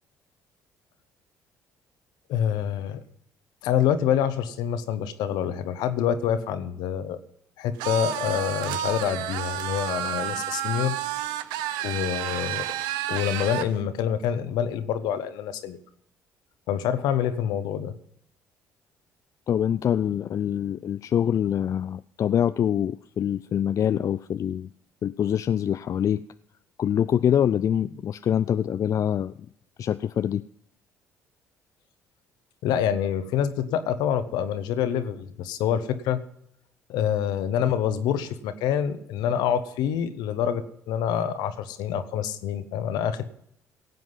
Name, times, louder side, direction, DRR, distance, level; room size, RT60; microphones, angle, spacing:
voice 1, 2.3-3.0 3.6-7.2 7.6-11.0 11.8-12.6 13.1-15.8 16.7-17.9 32.6-36.2 36.9-43.2, left 9 dB, 65° left, 11 dB, 1.1 m, -26 dB
sound 1, 7.8-13.7, right 12 dB, 70° right, 0.7 m, -30 dB
voice 2, 19.5-24.7 25.0-26.2 26.8-29.3 29.8-30.4, left 9 dB, 45° left, 13 dB, 0.4 m, -25 dB
17.5 x 7.8 x 5.7 m, 0.73 s
hypercardioid pair, 50°, 8 cm